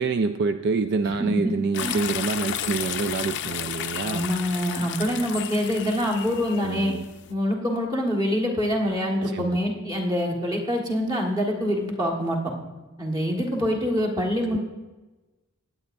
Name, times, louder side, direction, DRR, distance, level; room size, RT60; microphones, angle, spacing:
voice 1, 0.0-4.3 6.5-7.0 9.2-9.6 14.5-14.6, right 4 dB, 50° right, 9 dB, 0.3 m, -27 dB
voice 2, 1.2-2.0 4.0-6.9 7.3-12.4 13.0-14.6, equal, 20° right, -2 dB, 1.6 m, -25 dB
sound 1, 1.7-7.3, left 10 dB, 55° left, 0.5 m, -33 dB
19.5 x 8.4 x 2.6 m, 1.2 s
head